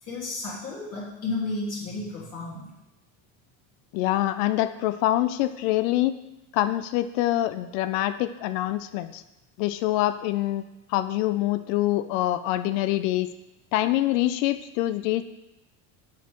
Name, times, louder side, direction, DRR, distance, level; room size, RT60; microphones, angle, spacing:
voice 1, 0.0-2.7, left 2 dB, 40° left, -5 dB, 1.8 m, -32 dB
voice 2, 3.9-6.1 6.5-9.2 9.6-10.6 10.9-13.3 13.7-15.2, left 15 dB, 85° left, 11 dB, 0.5 m, -25 dB
7.2 x 6.9 x 3.0 m, 0.95 s
cardioid pair, 160°, 38 cm